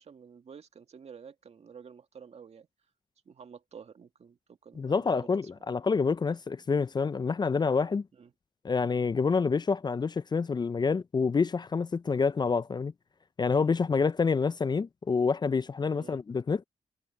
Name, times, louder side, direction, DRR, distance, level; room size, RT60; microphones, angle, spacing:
voice 1, 0.0-2.7 3.3-5.3 8.1-8.3 13.5-13.7 15.9-16.2, right 6 dB, 60° right, 2.2 m, -50 dB
voice 2, 4.8-8.1 8.6-12.9 13.4-16.6, left 5 dB, 35° left, 0.5 m, -27 dB
cardioid pair, 55°, 12 cm